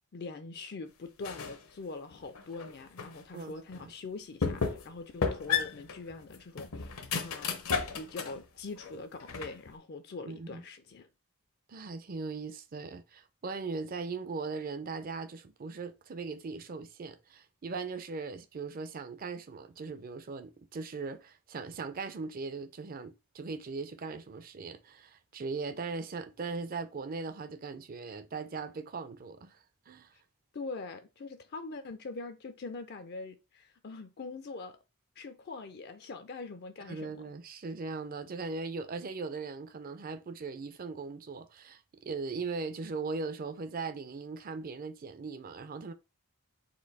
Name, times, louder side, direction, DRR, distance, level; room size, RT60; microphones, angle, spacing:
voice 1, 0.1-11.1 30.5-34.8 35.2-37.2, left 3 dB, 45° left, 0.4 m, -43 dB
sound 1, 1.2-1.6 2.1-3.2 3.7-3.8 4.4-4.9 5.2-8.4 8.8-9.7, left 5 dB, 70° left, 0.8 m, -33 dB
voice 2, 10.3-10.6 11.7-30.1 36.8-45.9, right 4 dB, 40° right, 0.4 m, -39 dB
4.3 x 2.6 x 4.0 m
head